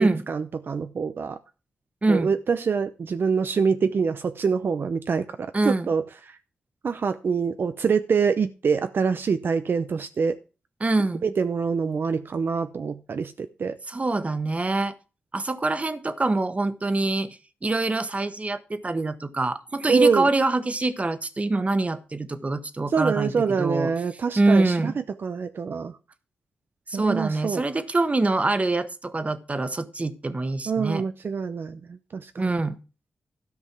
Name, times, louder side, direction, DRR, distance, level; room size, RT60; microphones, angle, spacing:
voice 1, 0.0-1.4 2.1-6.4 6.8-10.4 11.2-13.8 19.9-20.3 22.9-24.9 25.2-26.0 26.9-27.6 30.7-32.5, right 5 dB, 65° right, 10 dB, 0.8 m, -25 dB
voice 2, 5.5-5.9 10.8-11.3 13.9-14.9 15.3-23.9 24.4-24.9 26.9-31.0 32.4-32.8, right 2 dB, 35° right, 11 dB, 1.4 m, -25 dB
13.0 x 5.5 x 6.0 m, 0.35 s
cardioid pair, 50°, 4 cm